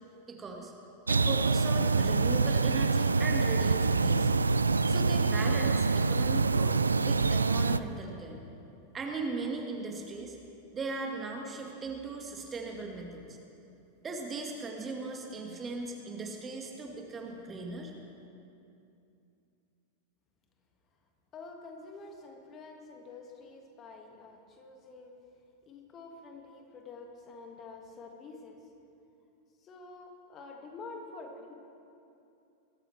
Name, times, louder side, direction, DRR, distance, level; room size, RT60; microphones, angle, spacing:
voice 1, 0.3-0.7 1.1-4.3 4.9-8.4 8.9-10.4 10.7-13.4 14.0-17.9, right 3 dB, 20° right, 1 dB, 1.7 m, -38 dB
sound 1, 1.1-7.8, right 4 dB, 75° right, 0.3 m, -26 dB
voice 2, 21.3-25.1 25.7-28.7 29.6-31.5, left 3 dB, 30° left, 2 dB, 1.8 m, -48 dB
21.5 x 13.5 x 3.3 m, 2.7 s
figure-of-eight pair, 90°, 0 cm